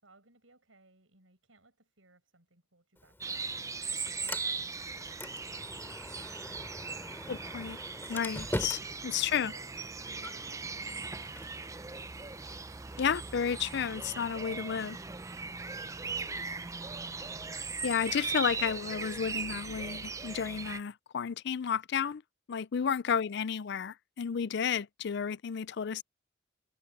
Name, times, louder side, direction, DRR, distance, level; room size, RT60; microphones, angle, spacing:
voice 1, 0.0-3.6 4.1-5.7 8.8-11.7 22.8-23.4, right 2 dB, 85° right, 7.8 m, -63 dB
Sliding door, 3.0-13.0, left 1 dB, 10° left, 3.0 m, -44 dB
sound 1, 3.2-20.8, right 4 dB, 15° right, 0.6 m, -39 dB
voice 2, 7.3-7.8 8.1-9.5 13.0-15.0 17.8-22.2 22.5-26.0, left 7 dB, 60° left, 0.4 m, -32 dB
head